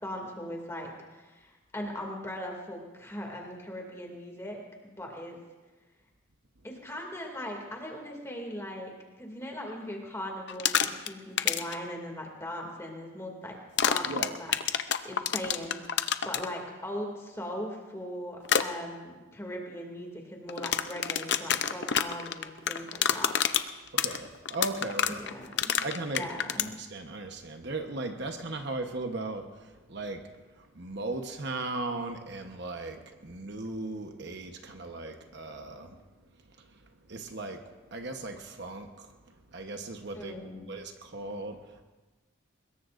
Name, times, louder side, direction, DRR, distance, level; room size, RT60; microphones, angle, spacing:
voice 1, 0.0-5.4 6.6-13.6 13.8-14.5 15.0-23.3 25.1-25.8 26.2-26.7 40.1-40.7, equal, 15° left, 0 dB, 2.5 m, -39 dB
sound 1, 10.5-11.1 11.4-11.7 13.8-16.5 18.4-18.6 20.5-26.7, left 8 dB, 55° left, 0.6 m, -27 dB
voice 2, 23.9-25.2 25.8-26.2 26.6-29.5 29.9-30.2 30.6-35.9 37.1-37.6 37.9-39.1 39.5-40.3 40.7-41.6, right 2 dB, 55° right, 5 dB, 1.1 m, -37 dB
23.5 x 21.0 x 2.6 m, 1.2 s
head